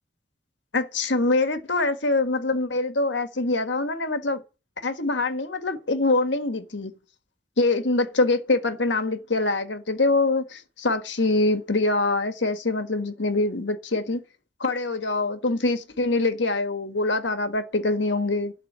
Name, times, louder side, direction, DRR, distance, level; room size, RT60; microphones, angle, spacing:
voice 1, 0.7-4.4 4.8-6.9 7.6-14.2 14.6-18.5, left 2 dB, 75° left, 1.6 m, -24 dB
12.0 x 4.1 x 8.0 m
head